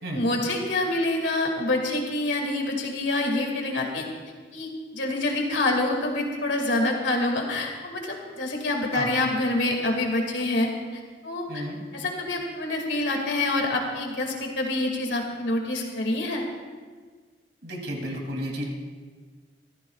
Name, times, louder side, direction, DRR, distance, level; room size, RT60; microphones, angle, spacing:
voice 1, 0.0-4.0 4.5-11.6 11.9-16.4, left 2 dB, 90° left, 1 dB, 2.3 m, -26 dB
voice 2, 11.5-11.8 17.6-18.7, equal, 70° right, 0 dB, 2.8 m, -32 dB
24.5 x 14.5 x 2.4 m, 1.5 s
head